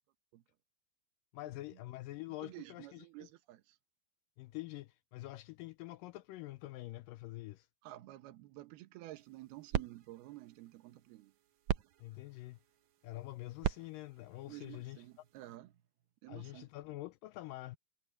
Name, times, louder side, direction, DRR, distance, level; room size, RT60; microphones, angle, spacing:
voice 1, 1.3-3.1 4.4-7.7 12.0-12.6 13.0-15.0 16.3-17.8, left 17 dB, 80° left, 2.0 m, -46 dB
voice 2, 2.4-3.8 7.8-11.3 14.5-15.8 16.2-16.7, right 17 dB, 90° right, 3.0 m, -51 dB
sound 1, 9.2-15.6, right 10 dB, 70° right, 1.8 m, -42 dB
omnidirectional pair, 4.4 m